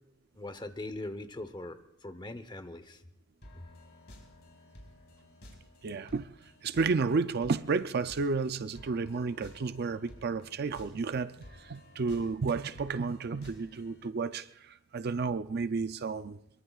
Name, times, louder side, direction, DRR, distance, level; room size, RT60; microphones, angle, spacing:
voice 1, 0.4-3.0, left 2 dB, 20° left, 0.9 m, -41 dB
sound 1, 3.4-14.1, left 1 dB, 55° left, 4.0 m, -54 dB
voice 2, 5.8-6.3 6.6-16.4, right 4 dB, 50° right, 0.5 m, -32 dB
23.5 x 23.0 x 2.4 m
head